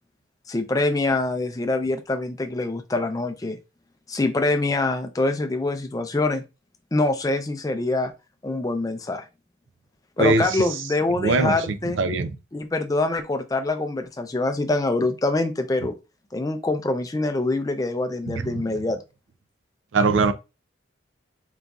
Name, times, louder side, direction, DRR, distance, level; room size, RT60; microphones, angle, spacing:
voice 1, 0.5-3.6 4.1-6.4 6.9-8.1 8.4-9.3 10.2-12.0 12.5-16.0 16.3-19.0, left 2 dB, 20° left, 0.4 m, -25 dB
voice 2, 10.2-10.7 11.2-12.4 18.3-18.6 19.9-20.3, right 3 dB, 80° right, 0.5 m, -22 dB
4.0 x 3.7 x 2.3 m
head